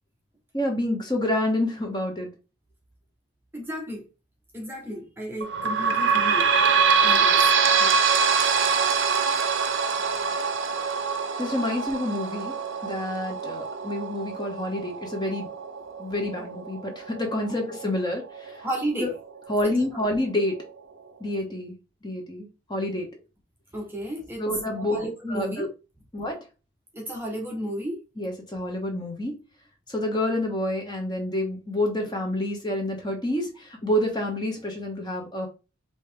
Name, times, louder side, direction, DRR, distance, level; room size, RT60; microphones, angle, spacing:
voice 1, 0.5-2.3 11.4-12.5 12.8-15.5 16.0-18.6 19.0-19.1 19.5-20.6 21.2-21.7 22.0-23.1 24.4-25.7 26.1-26.4 28.2-29.4 29.9-35.5, left 1 dB, 20° left, 1.2 m, -28 dB
voice 2, 3.5-4.1 4.5-6.5 7.0-7.4 7.8-8.0 18.6-19.1 19.6-20.0 23.7-24.5 24.7-25.7 26.9-28.0, right 1 dB, 10° right, 0.9 m, -33 dB
sound 1, 5.4-18.6 19.1-19.2 19.5-19.6 20.4-20.5, right 6 dB, 60° right, 0.7 m, -24 dB
4.9 x 3.1 x 3.4 m
head